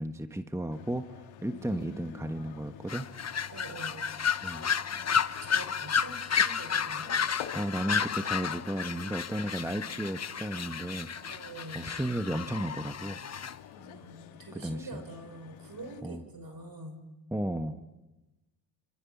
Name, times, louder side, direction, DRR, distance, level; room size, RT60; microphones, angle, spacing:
voice 1, 0.0-3.1 4.4-4.7 6.9-7.0 7.5-11.1 11.7-13.2 14.5-15.0 16.0-16.2 17.3-17.8, right 1 dB, 5° right, 8 dB, 1.4 m, -34 dB
sound 1, 0.7-16.0, left 11 dB, 85° left, 1.9 m, -50 dB
voice 2, 1.5-2.2 3.5-4.0 4.9-5.1 5.4-7.1 11.3-11.9 13.8-17.0, right 2 dB, 50° right, 8 dB, 6.1 m, -46 dB
sound 2, 2.9-13.5, left 7 dB, 35° left, 1.0 m, -32 dB
27.5 x 26.5 x 7.3 m, 1.1 s
supercardioid pair, 55°, 46 cm